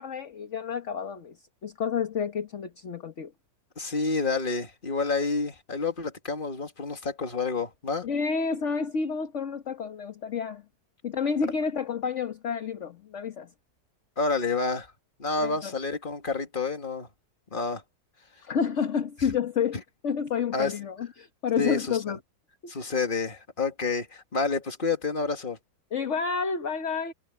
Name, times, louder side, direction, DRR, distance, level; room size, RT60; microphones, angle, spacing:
voice 1, 0.0-1.4 1.6-3.3 8.0-10.6 11.0-13.5 15.4-15.7 18.4-19.8 20.0-22.2 25.9-27.1, left 6 dB, 50° left, 1.5 m, -29 dB
voice 2, 3.8-8.1 14.2-14.9 15.2-17.1 17.5-17.8 20.5-20.7 21.6-22.0 22.7-25.6, left 4 dB, 30° left, 2.1 m, -29 dB
omnidirectional pair, 1.7 m